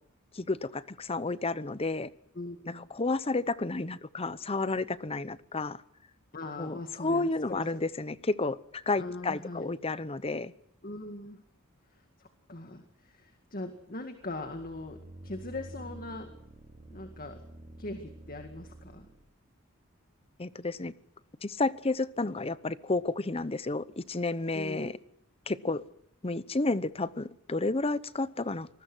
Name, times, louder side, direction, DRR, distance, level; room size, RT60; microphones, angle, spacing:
voice 1, 0.3-2.1 2.8-5.8 6.6-10.5 20.4-20.9 21.4-24.9 25.5-25.8 26.2-28.7, left 3 dB, 30° left, 0.8 m, -31 dB
voice 2, 2.3-2.9 6.3-7.8 9.0-9.7 10.8-11.4 11.9-16.3 16.9-17.4 17.8-19.1 24.5-24.9, left 2 dB, 45° left, 2.0 m, -41 dB
sound 1, 14.2-19.3, right 1 dB, 30° right, 1.4 m, -49 dB
26.0 x 20.0 x 6.3 m
head